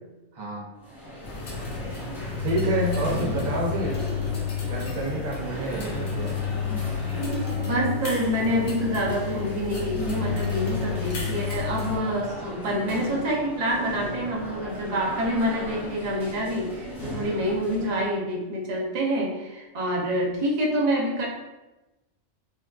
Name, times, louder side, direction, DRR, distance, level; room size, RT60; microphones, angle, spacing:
voice 1, 0.3-0.7 2.4-4.0 4.7-6.4, right 1 dB, 90° right, -3 dB, 1.1 m, -28 dB
sound 1, 0.8-18.1, right 1 dB, ahead, 0.6 m, -37 dB
sound 2, 1.2-12.0, left 7 dB, 90° left, 1.1 m, -31 dB
voice 2, 7.1-21.3, equal, 50° right, -2 dB, 0.5 m, -27 dB
3.7 x 2.3 x 2.3 m, 1.0 s
omnidirectional pair, 1.4 m